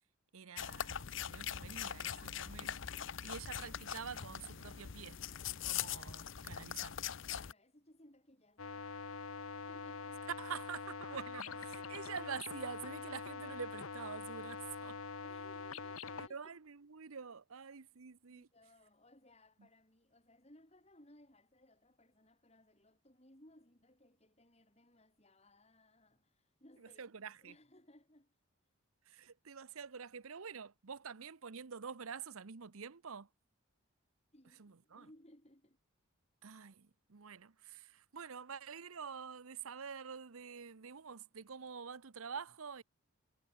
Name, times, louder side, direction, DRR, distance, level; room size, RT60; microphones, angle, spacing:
voice 1, 0.3-2.8 3.2-5.2 5.6-7.0 10.4-15.0 16.2-18.5 27.0-27.5 29.1-33.3 34.6-35.1 36.4-42.8, right 6 dB, 75° right, 0.8 m, -47 dB
sound 1, 0.6-7.5, left 9 dB, 60° left, 0.7 m, -42 dB
voice 2, 7.3-10.3 11.4-11.5 15.2-16.6 17.6-17.7 18.3-27.0 27.4-28.4 34.3-35.8, left 1 dB, 30° left, 4.1 m, -64 dB
sound 2, 8.6-16.3, left 4 dB, 80° left, 1.3 m, -45 dB
head